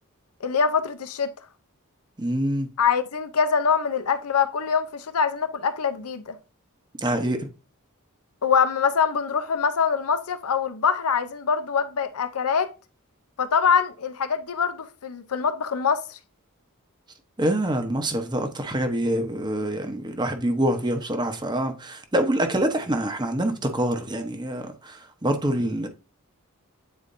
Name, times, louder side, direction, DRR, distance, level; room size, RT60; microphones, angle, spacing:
voice 1, 0.4-1.3 2.8-6.4 8.4-12.7 13.4-16.2, left 6 dB, 85° left, 0.7 m, -24 dB
voice 2, 2.2-2.7 7.0-7.5 17.4-25.9, right 1 dB, 20° right, 0.9 m, -25 dB
8.4 x 4.3 x 2.6 m
head